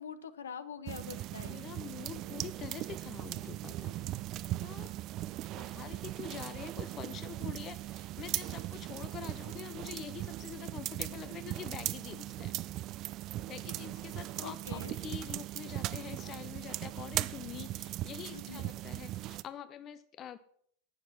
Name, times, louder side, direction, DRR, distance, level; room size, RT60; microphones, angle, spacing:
voice 1, 0.0-1.6 14.4-14.9 18.3-18.7, left 7 dB, 65° left, 14 dB, 0.8 m, -44 dB
sound 1, 0.9-19.4, right 15 dB, 35° right, 0.4 m, -39 dB
voice 2, 1.4-4.0 4.4-4.9 5.5-12.5 13.4-20.4, left 9 dB, 30° left, 14 dB, 0.4 m, -46 dB
11.5 x 9.4 x 4.3 m, 0.64 s
figure-of-eight pair, 90°, 0 cm